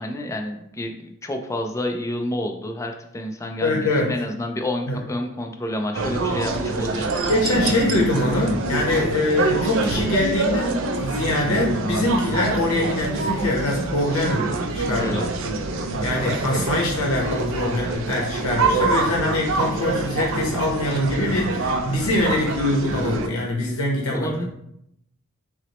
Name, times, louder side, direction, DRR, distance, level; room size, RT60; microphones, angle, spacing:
voice 1, 0.0-7.3 15.0-15.3 24.1-24.5, left 1 dB, 15° left, 4 dB, 0.4 m, -29 dB
voice 2, 3.6-4.2 4.9-5.0 7.3-14.5 14.7-15.2 16.0-24.5, left 1 dB, 80° left, -2 dB, 0.8 m, -23 dB
sound 1, 5.9-23.3, right 3 dB, 65° right, 0.4 m, -25 dB
5.9 x 2.0 x 2.9 m, 0.77 s
head